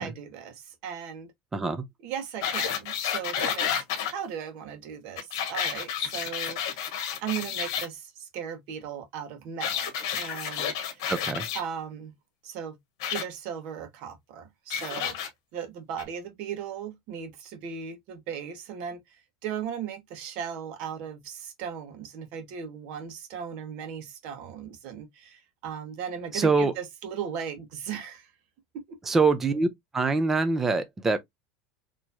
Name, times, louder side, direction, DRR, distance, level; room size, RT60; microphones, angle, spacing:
voice 1, 0.0-1.3 2.0-6.9 7.2-9.9 10.2-11.1 11.5-12.1 12.4-12.8 13.1-15.2 15.5-28.3 28.7-28.8, right 8 dB, 55° right, 1.3 m, -37 dB
voice 2, 1.5-1.8 11.1-11.5 26.3-26.7 29.1-29.7 29.9-31.2, right 3 dB, 15° right, 0.6 m, -24 dB
sound 1, 2.4-4.1 5.2-7.9 9.6-11.6 13.0-13.2 14.7-15.3 16.0-16.1, left 8 dB, 75° left, 1.1 m, -30 dB
4.4 x 3.0 x 2.7 m
supercardioid pair, 155°, 2 cm